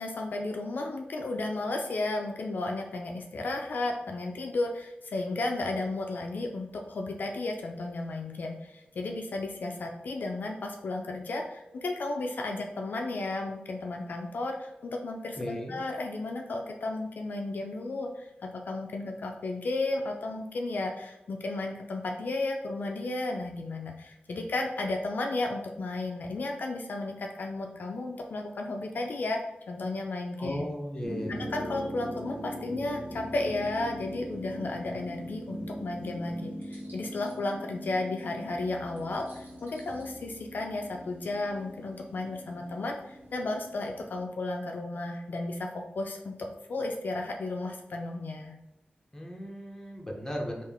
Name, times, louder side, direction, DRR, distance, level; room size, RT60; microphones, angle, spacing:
voice 1, 0.0-29.4 29.7-30.6 31.3-48.6, left 2 dB, 65° left, 2 dB, 0.4 m, -33 dB
voice 2, 15.4-15.8 30.4-31.4 49.1-50.6, equal, 15° left, -1 dB, 0.7 m, -36 dB
sound 1, 31.0-44.2, equal, 65° right, 1.1 m, -41 dB
3.4 x 2.4 x 3.5 m, 0.90 s
wide cardioid pair, 100°, 3 cm